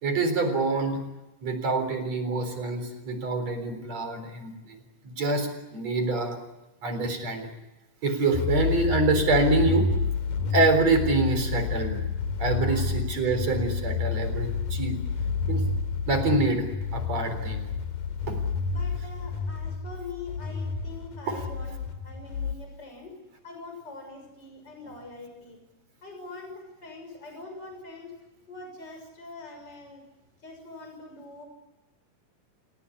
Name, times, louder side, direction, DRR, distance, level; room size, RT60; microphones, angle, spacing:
voice 1, 0.0-1.0 1.4-4.8 5.0-6.4 6.8-7.5 8.0-9.9 10.5-12.0 12.4-15.0 15.5-15.6 16.1-17.6 18.3-18.4 21.3-21.4, right 3 dB, 50° right, 7 dB, 5.1 m, -26 dB
sound 1, 8.3-22.6, left 5 dB, 75° left, 3.9 m, -29 dB
voice 2, 12.4-12.9 17.4-17.6 18.7-21.8 22.0-23.2 23.4-25.6 26.0-28.1 28.5-30.0 30.4-31.5, left 3 dB, 30° left, 4 dB, 7.1 m, -43 dB
29.5 x 17.5 x 9.8 m, 1.0 s
omnidirectional pair, 3.9 m